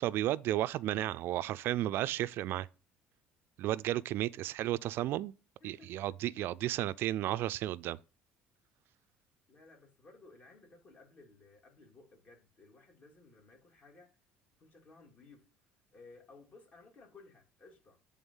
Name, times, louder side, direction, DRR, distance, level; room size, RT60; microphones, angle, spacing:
voice 1, 0.0-2.7 3.6-5.3 5.6-8.0, right 14 dB, 65° right, 0.3 m, -33 dB
voice 2, 5.6-6.0 9.5-14.1 14.6-18.0, left 3 dB, 40° left, 2.7 m, -58 dB
8.7 x 3.6 x 5.4 m
cardioid pair, 105°, 4 cm